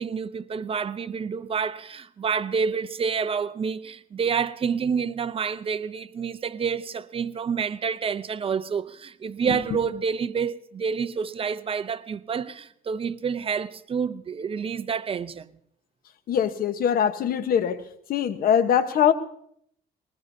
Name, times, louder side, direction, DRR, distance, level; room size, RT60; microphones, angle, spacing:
voice 1, 0.0-15.5, right 6 dB, 35° right, 0.6 m, -28 dB
voice 2, 16.3-17.8 18.1-19.1, left 8 dB, 60° left, 1.1 m, -22 dB
21.0 x 19.5 x 2.7 m
cardioid pair, 110°, 17 cm